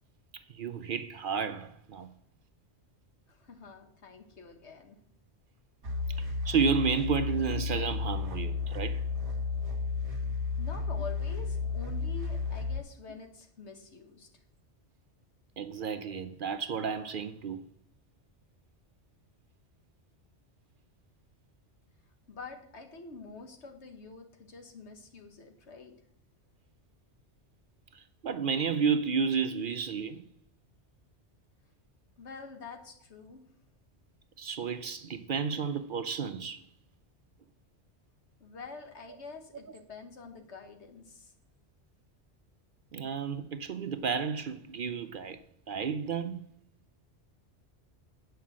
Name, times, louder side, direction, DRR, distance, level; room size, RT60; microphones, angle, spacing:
voice 1, 0.3-2.1 6.2-9.0 15.6-17.6 27.9-30.2 34.4-36.6 42.9-45.4 45.7-46.4, right 6 dB, 55° right, 0.7 m, -32 dB
voice 2, 3.3-5.0 10.6-14.3 22.3-25.9 32.2-33.4 38.4-41.3, left 4 dB, 75° left, 1.7 m, -47 dB
sound 1, 5.8-12.8, left 4 dB, 75° right, 1.7 m, -33 dB
8.9 x 5.6 x 7.4 m
omnidirectional pair, 1.2 m